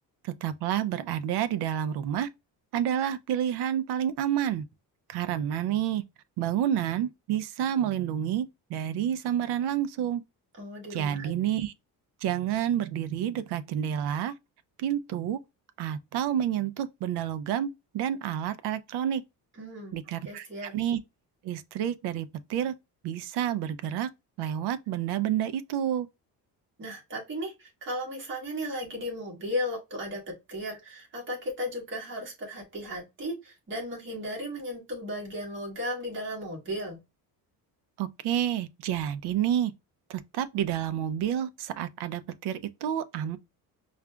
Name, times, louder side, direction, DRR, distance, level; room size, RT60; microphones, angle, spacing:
voice 1, 0.2-2.3 2.7-4.6 5.1-6.0 6.4-10.2 10.9-11.7 12.2-14.3 14.8-15.4 15.8-19.2 19.9-20.5 20.7-21.0 21.4-22.7 23.0-24.1 24.4-26.1 38.0-39.7 40.1-43.4, right 10 dB, 80° right, 0.5 m, -29 dB
voice 2, 10.6-11.3 19.6-19.9 20.2-20.7 26.8-37.0, equal, 30° right, 1.4 m, -35 dB
4.8 x 2.4 x 2.2 m
cardioid pair, 180°, 38 cm